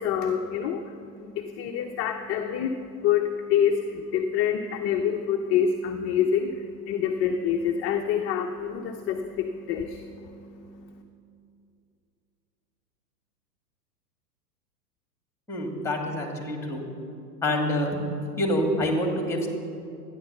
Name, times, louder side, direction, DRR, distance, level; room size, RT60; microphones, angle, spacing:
voice 1, 0.0-11.0, left 8 dB, 30° left, 4 dB, 0.7 m, -27 dB
voice 2, 15.5-16.8 17.4-18.0 18.4-19.5, left 1 dB, 5° left, 2 dB, 2.4 m, -26 dB
13.0 x 9.9 x 6.9 m, 2.5 s
hypercardioid pair, 110°, 50 cm